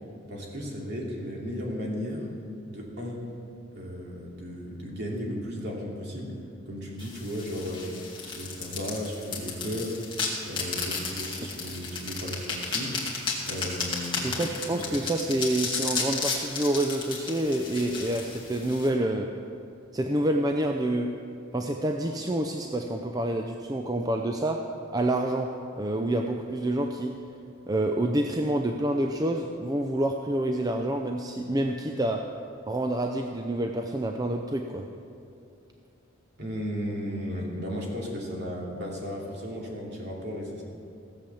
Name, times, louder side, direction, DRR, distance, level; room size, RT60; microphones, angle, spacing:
voice 1, 0.3-2.3 2.7-3.2 3.7-6.4 6.7-7.9 8.2-10.0 10.4-13.0 13.5-14.3 14.7-14.8 36.4-40.6, equal, 55° right, -2 dB, 2.7 m, -35 dB
sound 1, 7.0-18.9, left 4 dB, 25° left, 2.1 m, -33 dB
voice 2, 14.2-19.3 19.9-21.1 21.5-24.7 24.9-27.2 27.7-32.3 32.7-34.9, right 1 dB, 20° right, 3 dB, 0.5 m, -28 dB
16.0 x 7.6 x 7.1 m, 2.6 s
head